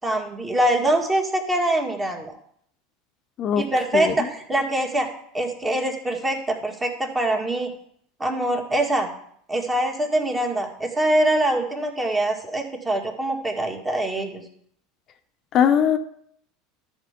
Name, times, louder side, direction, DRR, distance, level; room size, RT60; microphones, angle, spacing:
voice 1, 0.0-2.4 3.6-5.1 5.3-7.7 8.2-9.1 9.5-14.4, right 1 dB, 20° right, 2 dB, 1.9 m, -24 dB
voice 2, 3.9-4.3 15.5-16.0, left 8 dB, 45° left, 7 dB, 0.7 m, -20 dB
12.5 x 4.5 x 5.1 m, 0.66 s
hypercardioid pair, 90°, 0 cm